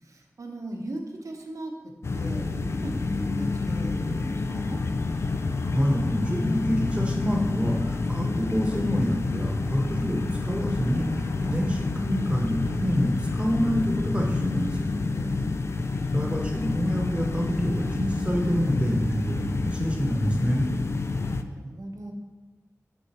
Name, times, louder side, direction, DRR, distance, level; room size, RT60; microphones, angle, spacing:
voice 1, 0.0-4.8 15.0-15.6 20.9-22.1, right 1 dB, 70° right, 2 dB, 0.9 m, -38 dB
sound 1, 2.0-21.4, left 3 dB, 50° left, 0.3 m, -28 dB
voice 2, 5.7-11.1 11.4-14.9 16.1-20.6, equal, 20° right, 0 dB, 1.1 m, -27 dB
6.4 x 5.3 x 2.9 m, 1.2 s
wide cardioid pair, 70°, 6 cm